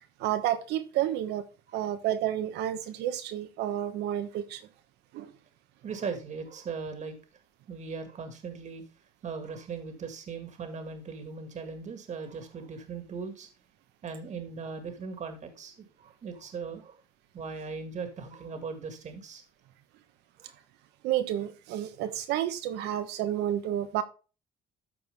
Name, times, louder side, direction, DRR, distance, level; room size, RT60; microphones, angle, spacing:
voice 1, 0.2-1.4 1.7-4.6 5.1-5.3 21.0-24.0, right 11 dB, 90° right, 1.2 m, -30 dB
voice 2, 5.8-7.2 7.7-8.8 9.2-13.5 14.0-17.0 17.3-19.4 20.4-20.6, right 5 dB, 45° right, 1.8 m, -39 dB
13.0 x 4.7 x 3.4 m
cardioid pair, 110°, 17 cm